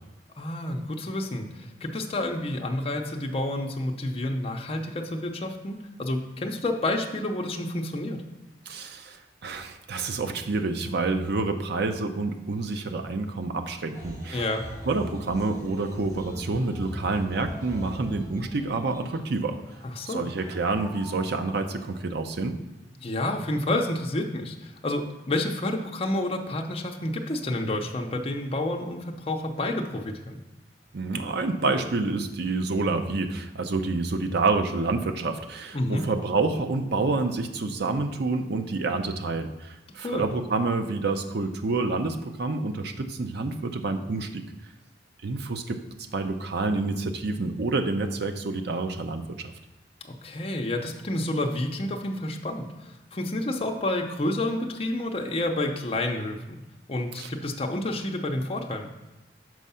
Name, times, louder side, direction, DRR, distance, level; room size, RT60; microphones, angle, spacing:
voice 1, 0.4-8.2 14.3-14.6 19.8-20.3 23.0-30.4 35.7-36.1 40.0-40.2 50.0-56.4 56.9-58.9, left 1 dB, 30° left, 1 dB, 0.6 m, -29 dB
voice 2, 8.7-9.2 9.4-14.5 14.9-19.6 20.1-22.6 30.9-44.4 45.2-45.8 46.1-49.5 57.2-57.3, right 3 dB, 65° right, 6 dB, 0.6 m, -28 dB
sound 1, 13.9-22.0, equal, 20° right, 2.5 m, -42 dB
6.3 x 4.6 x 5.5 m, 0.99 s
head